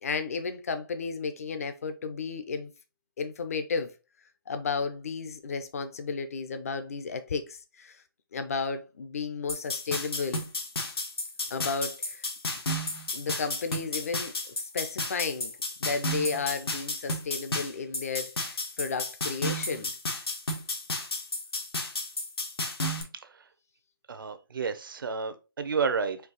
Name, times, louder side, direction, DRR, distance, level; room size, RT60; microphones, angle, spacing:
voice 1, 0.0-2.7 3.2-3.9 4.5-8.0 8.3-10.4 11.5-12.3 13.1-15.5 15.8-19.9, left 4 dB, 40° left, 0.6 m, -33 dB
sound 1, 9.5-23.0, left 1 dB, 90° left, 1.5 m, -32 dB
voice 2, 24.1-26.2, right 5 dB, 60° right, 0.7 m, -30 dB
4.6 x 2.7 x 4.0 m
hypercardioid pair, 170°, 13 cm